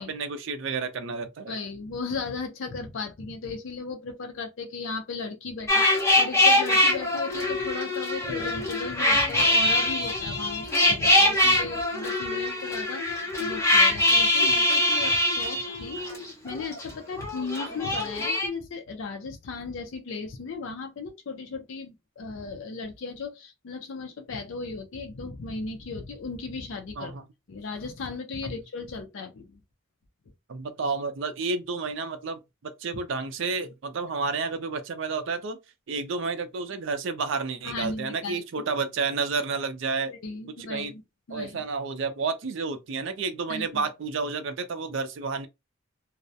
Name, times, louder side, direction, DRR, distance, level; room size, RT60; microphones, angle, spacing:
voice 1, 0.0-1.6 15.0-15.2 27.0-27.2 28.4-28.6 30.5-32.4 32.8-35.6 35.9-40.1 40.6-40.9 41.3-45.5, right 4 dB, 65° right, 0.4 m, -30 dB
voice 2, 1.5-27.1 27.5-29.6 37.6-38.4 40.1-41.0 41.3-41.6 43.5-43.9, left 4 dB, 70° left, 0.4 m, -36 dB
sound 1, 5.7-16.8 17.1-18.5, left 1 dB, 15° left, 0.7 m, -23 dB
2.3 x 2.0 x 2.6 m
head